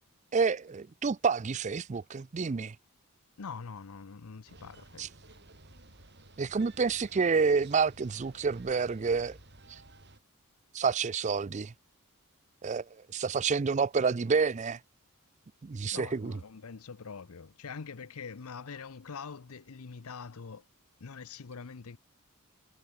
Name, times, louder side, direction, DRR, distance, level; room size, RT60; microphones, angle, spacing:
voice 1, 0.3-2.8 5.0-5.1 6.4-9.4 9.7-9.8 10.7-11.7 12.6-12.9 13.1-14.8 15.6-16.3, right 5 dB, 30° right, 0.4 m, -28 dB
voice 2, 3.4-5.1 15.9-20.6 21.0-22.0, left 5 dB, 75° left, 0.7 m, -44 dB
sound 1, 4.4-10.2, right 2 dB, 50° right, 4.5 m, -54 dB
head